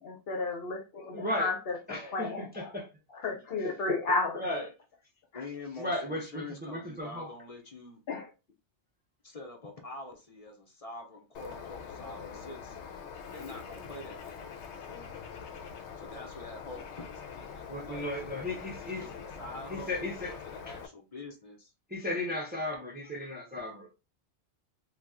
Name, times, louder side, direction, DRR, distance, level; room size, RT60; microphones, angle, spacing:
voice 1, 0.0-2.7 3.1-4.3 8.1-8.3, left 3 dB, 65° left, 1.0 m, -32 dB
voice 2, 1.1-1.5 1.9-2.9 4.3-4.6 5.8-7.3 17.7-19.0 19.7-20.3 21.9-23.9, left 1 dB, 10° right, 0.6 m, -35 dB
voice 3, 5.3-8.0 9.2-13.0 13.3-14.6 16.0-18.1 18.7-21.7, left 2 dB, 40° left, 0.7 m, -45 dB
Bird, 11.3-20.9, left 6 dB, 90° left, 0.9 m, -44 dB
2.8 x 2.3 x 3.5 m
omnidirectional pair, 1.1 m